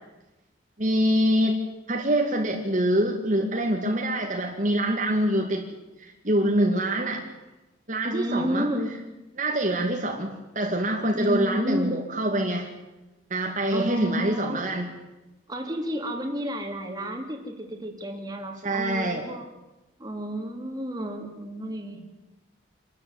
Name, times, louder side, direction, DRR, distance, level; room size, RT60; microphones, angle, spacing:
voice 1, 0.8-1.6 1.9-5.7 6.0-7.2 7.9-8.7 9.4-12.7 13.3-14.9 18.6-19.3, right 1 dB, 45° right, 1 dB, 2.4 m, -25 dB
voice 2, 8.1-8.9 11.1-12.0 13.7-14.6 15.5-19.5 20.0-22.0, right 1 dB, 20° right, 3 dB, 3.1 m, -31 dB
26.5 x 13.5 x 9.9 m, 1.0 s
head